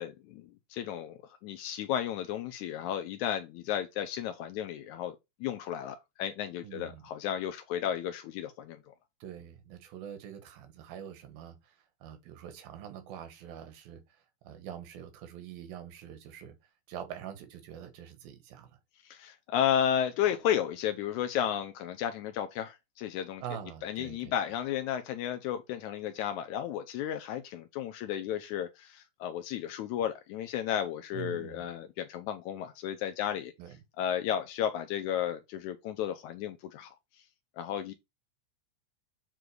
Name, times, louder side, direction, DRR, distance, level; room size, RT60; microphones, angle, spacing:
voice 1, 0.0-8.9 19.0-23.4 23.8-33.5 34.0-36.9 37.6-37.9, left 10 dB, 90° left, 1.7 m, -33 dB
voice 2, 6.6-7.1 9.2-11.7 12.0-14.0 14.4-16.5 16.9-18.7 23.4-24.3 31.1-31.7 33.6-33.8, right 9 dB, 80° right, 3.1 m, -44 dB
7.9 x 3.9 x 4.7 m
omnidirectional pair, 4.2 m